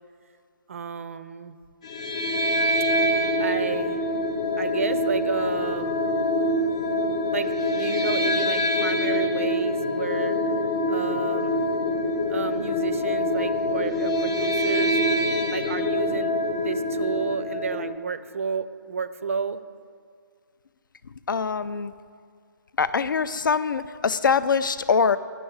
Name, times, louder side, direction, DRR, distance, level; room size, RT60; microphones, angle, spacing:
voice 1, 0.7-1.6 3.4-4.0 4.6-6.0 7.3-10.4 10.9-11.6 12.3-15.0 15.5-19.6, right 5 dB, 45° right, 13 dB, 0.4 m, -31 dB
sound 1, 1.8-18.0, left 1 dB, 20° left, 0.4 m, -25 dB
voice 2, 21.3-21.9 22.8-25.2, left 5 dB, 75° left, 14 dB, 0.5 m, -23 dB
10.0 x 6.3 x 7.9 m, 2.1 s
hypercardioid pair, 170°, 11 cm